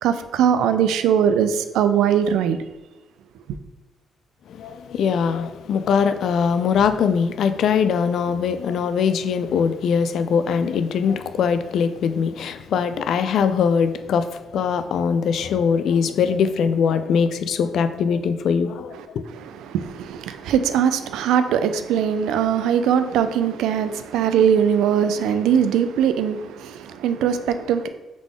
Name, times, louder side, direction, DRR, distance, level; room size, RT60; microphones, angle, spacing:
voice 1, 0.0-2.6 19.7-27.9, right 8 dB, 85° right, 0.3 m, -20 dB
voice 2, 4.5-19.3, left 6 dB, 70° left, 0.3 m, -22 dB
3.7 x 3.6 x 3.6 m
cardioid pair, 90°, 0 cm